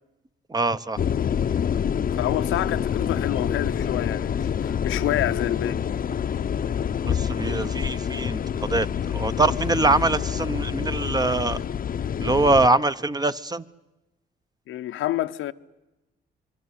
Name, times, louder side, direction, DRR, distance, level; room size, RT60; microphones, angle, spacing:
voice 1, 0.5-1.0 7.1-8.4 8.7-8.9 9.1-11.6 12.2-13.6, right 2 dB, 20° right, 0.9 m, -23 dB
sound 1, 1.0-12.7, left 8 dB, 45° left, 0.8 m, -27 dB
voice 2, 2.1-5.8 14.7-15.5, left 13 dB, 85° left, 1.0 m, -28 dB
25.5 x 23.5 x 8.5 m
cardioid pair, 90°, 20 cm